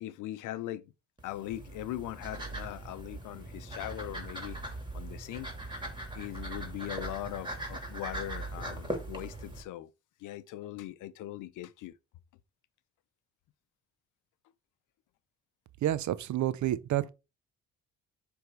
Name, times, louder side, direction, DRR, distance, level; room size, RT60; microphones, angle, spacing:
voice 1, 0.0-0.9 1.2-4.6 4.9-5.5 6.1-9.9 10.2-11.9, left 14 dB, 85° left, 0.6 m, -40 dB
sound 1, 1.2-9.6, right 1 dB, 15° right, 2.6 m, -40 dB
voice 2, 15.8-17.1, right 13 dB, 70° right, 0.8 m, -29 dB
8.0 x 3.5 x 4.6 m
cardioid pair, 90°, 30 cm